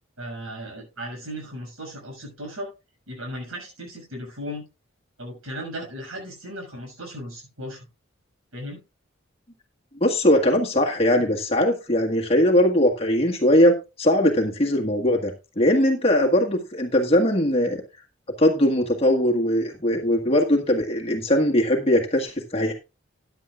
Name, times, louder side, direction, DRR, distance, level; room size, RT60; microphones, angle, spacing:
voice 1, 0.2-2.7 3.1-4.6 5.2-7.8 8.5-8.8, equal, 90° right, 1 dB, 6.4 m, -36 dB
voice 2, 10.0-17.8 18.4-22.7, left 1 dB, 30° left, 1 dB, 1.6 m, -20 dB
14.5 x 10.5 x 2.4 m, 0.27 s
head